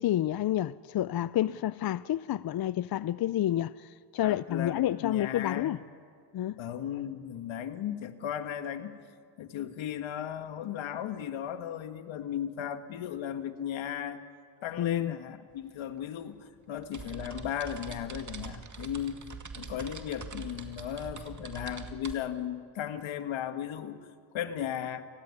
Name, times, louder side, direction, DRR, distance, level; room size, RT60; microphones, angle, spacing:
voice 1, 0.0-5.8 6.3-6.6 14.8-15.1, left 12 dB, 50° left, 0.6 m, -29 dB
voice 2, 4.2-5.8 6.6-9.0 9.4-14.2 14.6-19.2 19.5-24.1 24.3-25.0, left 10 dB, 80° left, 1.7 m, -36 dB
sound 1, 15.5-15.6 15.9-22.1, right 5 dB, 40° right, 2.2 m, -44 dB
29.0 x 18.0 x 9.6 m
cardioid pair, 75°, 46 cm